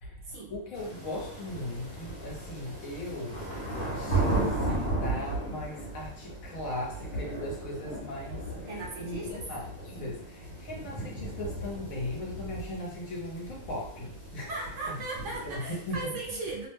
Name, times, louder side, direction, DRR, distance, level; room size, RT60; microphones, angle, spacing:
voice 1, 0.0-14.5 14.9-15.0 15.4-16.4, left 1 dB, 75° left, -3 dB, 1.3 m, -38 dB
sound 1, 0.7-16.0, right 2 dB, 55° left, 1.3 m, -35 dB
voice 2, 8.7-9.3 14.5-16.7, right 3 dB, 65° right, -2 dB, 0.9 m, -37 dB
2.9 x 2.1 x 3.3 m, 0.67 s
omnidirectional pair, 1.5 m